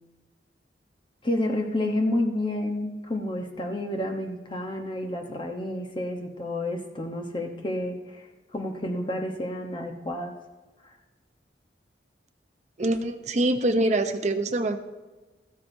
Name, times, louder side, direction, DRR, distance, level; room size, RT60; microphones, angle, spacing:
voice 1, 1.2-10.4 10.8-11.0, left 1 dB, 25° left, 3 dB, 1.0 m, -30 dB
voice 2, 12.8-14.8, right 1 dB, 40° right, 8 dB, 0.7 m, -24 dB
14.5 x 13.0 x 2.7 m, 1.2 s
head